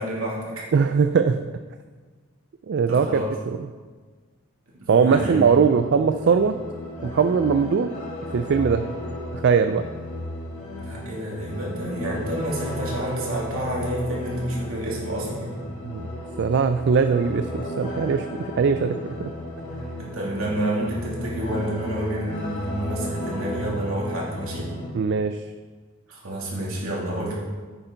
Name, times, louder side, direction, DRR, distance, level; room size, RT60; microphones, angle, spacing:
voice 1, 0.0-0.7 2.9-3.3 4.8-5.6 10.8-15.6 20.0-24.7 26.1-27.3, right 1 dB, 70° right, -4 dB, 2.8 m, -29 dB
voice 2, 0.7-1.4 2.7-3.2 4.9-6.6 7.0-7.9 8.3-8.8 9.3-9.8 15.8-16.1 16.4-19.3 24.9-25.4, right 6 dB, 55° right, 9 dB, 0.4 m, -20 dB
sound 1, 5.1-24.9, left 1 dB, 35° left, 2.1 m, -34 dB
9.8 x 8.9 x 3.9 m, 1.4 s
head